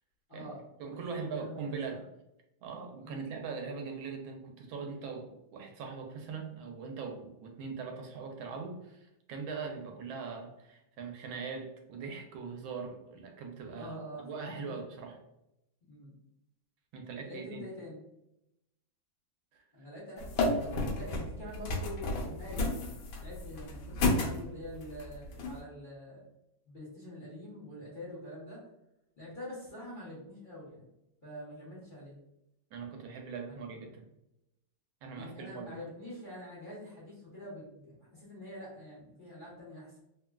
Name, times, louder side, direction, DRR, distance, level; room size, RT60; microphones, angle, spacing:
voice 1, 0.3-2.0 3.0-3.3 13.7-14.3 14.6-14.7 15.9-16.1 17.2-18.0 19.7-26.2 26.7-28.6 29.2-30.9 31.2-32.1 33.5-33.6 35.1-40.0, left 1 dB, 35° left, -9 dB, 0.9 m, -45 dB
voice 2, 0.8-2.0 2.6-15.2 16.9-17.7 19.5-19.6 32.7-34.0 35.0-35.8, right 5 dB, 80° right, 2 dB, 1.4 m, -41 dB
sound 1, 20.2-25.6, left 2 dB, 90° left, 1.4 m, -32 dB
3.5 x 2.2 x 2.2 m, 0.86 s
omnidirectional pair, 2.1 m